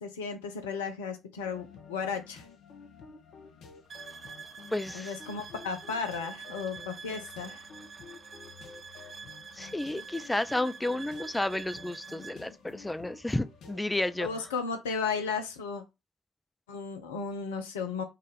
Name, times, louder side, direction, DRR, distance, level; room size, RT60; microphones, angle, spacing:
voice 1, 0.0-2.4 4.9-7.6 14.2-15.8 16.7-18.0, left 5 dB, 85° left, 0.6 m, -34 dB
sound 1, 1.4-14.5, left 5 dB, 65° left, 0.9 m, -51 dB
sound 2, 3.9-12.4, right 5 dB, 40° right, 0.5 m, -46 dB
voice 2, 4.7-5.1 9.6-14.3, left 1 dB, 10° left, 0.4 m, -31 dB
4.0 x 2.5 x 3.9 m
hypercardioid pair, 50°, 0 cm